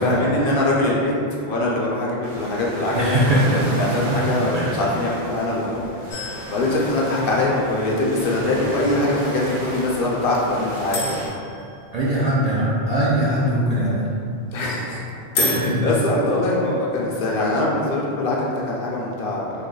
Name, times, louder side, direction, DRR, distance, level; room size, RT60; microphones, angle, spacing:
voice 1, 0.0-11.0 14.5-15.0 15.4-19.5, left 2 dB, 65° left, -4 dB, 0.7 m, -23 dB
sound 1, 2.2-11.3, right 1 dB, 80° right, 1.0 m, -34 dB
voice 2, 2.9-3.6 4.1-4.2 4.5-4.7 11.9-14.1 15.7-15.8, right 1 dB, 55° right, -8 dB, 0.4 m, -21 dB
sound 2, 6.1-8.0 10.9-12.7 15.3-16.2, left 1 dB, 80° left, 1.0 m, -30 dB
3.1 x 2.1 x 3.7 m, 2.5 s
omnidirectional pair, 1.1 m